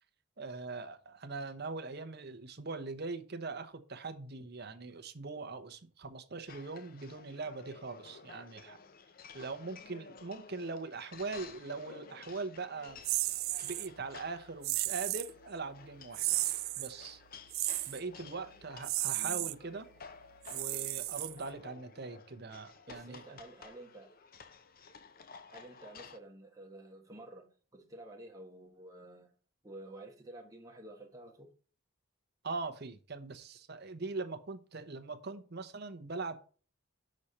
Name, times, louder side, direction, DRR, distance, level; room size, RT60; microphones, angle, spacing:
voice 1, 0.4-8.8 9.3-13.0 13.6-16.3 16.8-17.2 17.9-19.9 20.5-23.4 32.4-36.4, right 3 dB, 50° right, 0.9 m, -41 dB
sound 1, 6.5-26.2, left 5 dB, 45° left, 0.6 m, -54 dB
sound 2, 13.0-13.9 14.6-15.3 16.1-16.9 17.5-18.0 18.8-19.5 20.4-21.6, right 19 dB, 75° right, 0.4 m, -34 dB
voice 2, 19.1-19.5 22.9-24.2 25.5-29.3 29.6-31.5, right 1 dB, 15° right, 1.4 m, -51 dB
6.4 x 4.3 x 6.5 m
head